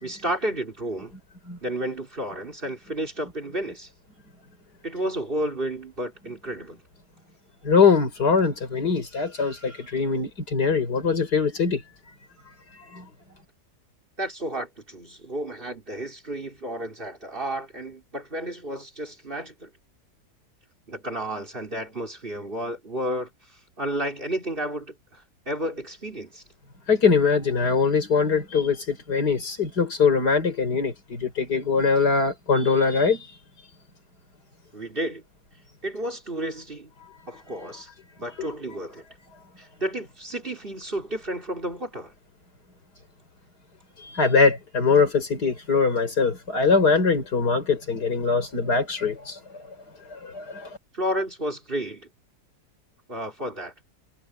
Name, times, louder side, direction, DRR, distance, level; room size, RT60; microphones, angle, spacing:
voice 1, 0.0-1.1 1.6-3.9 4.8-6.8 14.2-19.7 20.9-26.4 34.7-35.2 35.8-36.9 37.3-37.9 38.2-39.0 39.6-42.1 50.9-52.1 53.1-53.7, right 1 dB, 30° right, 3.7 m, -32 dB
voice 2, 7.6-11.8 12.9-13.0 26.9-33.2 38.4-38.5 44.0-49.4 50.2-50.7, left 5 dB, 65° left, 5.3 m, -22 dB
omnidirectional pair, 1.8 m